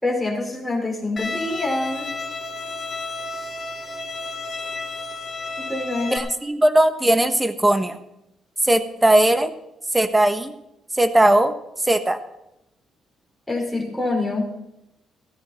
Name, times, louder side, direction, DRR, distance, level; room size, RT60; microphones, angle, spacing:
voice 1, 0.0-2.1 5.7-6.2 13.5-14.5, left 2 dB, 5° left, -2 dB, 5.1 m, -25 dB
Bowed string instrument, 1.2-6.2, left 3 dB, 35° left, 2.7 m, -32 dB
voice 2, 6.1-8.0 8.6-9.5 9.9-10.5 10.9-11.5 11.8-12.2, right 1 dB, 15° right, 10 dB, 1.3 m, -18 dB
15.5 x 13.0 x 4.4 m, 0.85 s
cardioid pair, 90°, 0 cm